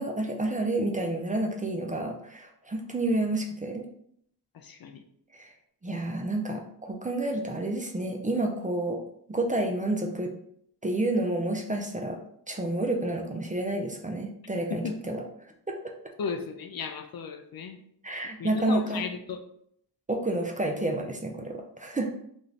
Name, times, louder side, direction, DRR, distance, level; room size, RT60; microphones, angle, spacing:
voice 1, 0.0-3.9 5.3-5.5 5.8-9.0 9.3-10.3 10.8-12.2 12.5-15.2 15.7-15.8 18.0-19.0 20.1-22.1, right 2 dB, 15° right, 1 dB, 0.5 m, -29 dB
voice 2, 4.5-5.0 14.7-15.0 16.2-17.8 18.4-19.4, left 5 dB, 55° left, 6 dB, 0.5 m, -35 dB
2.5 x 2.4 x 3.2 m, 0.67 s
cardioid pair, 50°, 45 cm